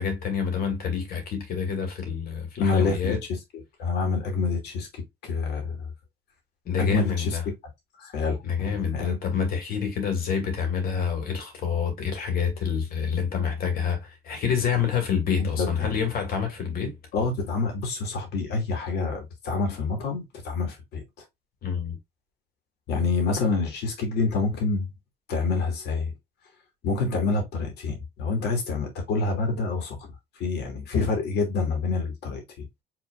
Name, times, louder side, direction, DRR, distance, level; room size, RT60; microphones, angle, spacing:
voice 1, 0.0-3.2 6.6-7.4 8.4-17.0 21.6-22.0, left 7 dB, 60° left, 2.4 m, -27 dB
voice 2, 2.6-3.2 3.5-5.9 6.8-7.4 8.0-8.4 8.6-9.2 15.4-15.9 17.1-21.0 22.9-24.9 25.3-26.1 26.8-30.1 30.3-32.7, left 4 dB, 75° left, 2.4 m, -27 dB
5.3 x 3.8 x 2.4 m
cardioid pair, 110°, 17 cm